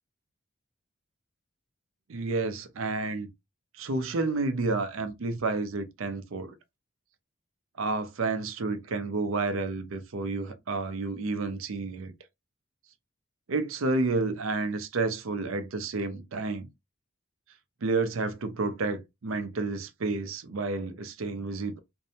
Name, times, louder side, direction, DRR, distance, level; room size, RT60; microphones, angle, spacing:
voice 1, 2.1-3.3 3.7-6.5 7.8-12.1 13.5-16.7 17.8-21.8, right 3 dB, 75° right, 0.5 m, -30 dB
2.6 x 2.1 x 2.7 m
head